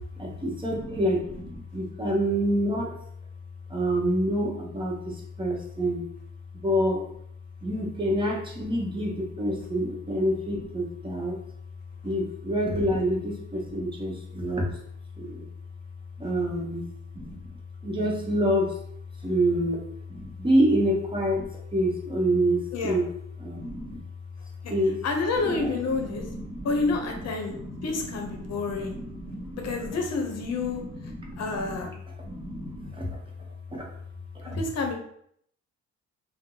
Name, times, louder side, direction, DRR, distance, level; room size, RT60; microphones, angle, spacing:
voice 1, 0.2-2.9 3.7-6.0 6.5-7.1 7.6-11.4 12.0-14.7 15.2-15.4 16.2-16.8 17.1-17.4 17.8-18.7 19.2-19.8 20.1-21.5 21.7-23.1 23.4-24.0 24.7-25.0 25.4-30.0 30.5-31.8 32.2-33.2 33.7-33.8 34.3-34.6, equal, 15° right, -2 dB, 0.8 m, -28 dB
voice 2, 25.0-26.3 26.6-27.6 27.8-29.0 29.6-30.8 31.4-31.9 34.5-34.9, left 3 dB, 60° left, 3 dB, 0.7 m, -29 dB
2.6 x 2.0 x 3.7 m, 0.68 s
cardioid pair, 90°, 30 cm